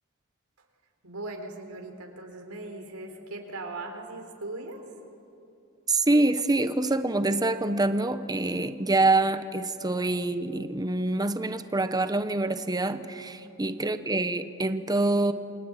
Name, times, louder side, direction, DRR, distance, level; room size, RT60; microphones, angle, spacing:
voice 1, 1.0-4.8 13.8-14.0, right 2 dB, 85° right, 4 dB, 4.1 m, -39 dB
voice 2, 5.9-15.3, right 2 dB, 20° right, 10 dB, 1.0 m, -26 dB
28.5 x 23.5 x 9.0 m, 2.6 s
head